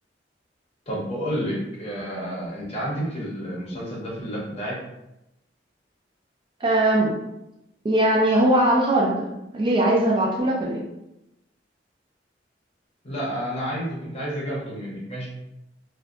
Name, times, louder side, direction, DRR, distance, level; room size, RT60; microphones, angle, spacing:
voice 1, 0.9-4.8 13.0-15.3, equal, 35° left, -5 dB, 0.8 m, -30 dB
voice 2, 6.6-7.1 7.8-9.3 9.5-10.9, right 1 dB, 25° right, -3 dB, 0.4 m, -20 dB
2.6 x 2.1 x 2.4 m, 0.90 s
head